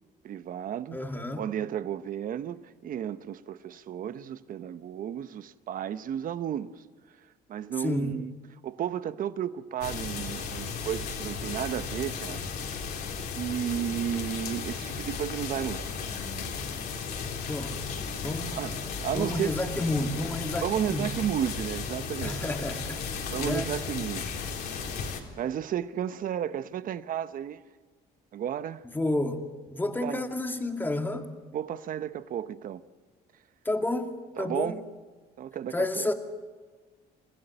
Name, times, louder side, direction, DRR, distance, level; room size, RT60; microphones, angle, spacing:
voice 1, 0.2-1.0 1.4-6.7 7.5-8.3 8.6-12.5 13.3-15.9 18.5-18.7 19.0-19.6 20.6-22.8 23.3-24.3 25.4-27.6 28.3-28.8 30.0-30.2 31.5-32.8 34.4-34.8 35.4-36.1, right 10 dB, 55° right, 1.0 m, -33 dB
voice 2, 0.9-1.4 7.8-8.2 17.5-17.8 18.2-18.6 19.1-21.1 22.2-23.0 23.4-23.7 28.9-29.4 29.7-31.3 33.6-34.7 35.7-36.1, left 2 dB, 10° left, 2.3 m, -30 dB
sound 1, 9.8-25.2, left 5 dB, 70° left, 3.9 m, -35 dB
29.0 x 15.5 x 9.0 m
cardioid pair, 110°, 17 cm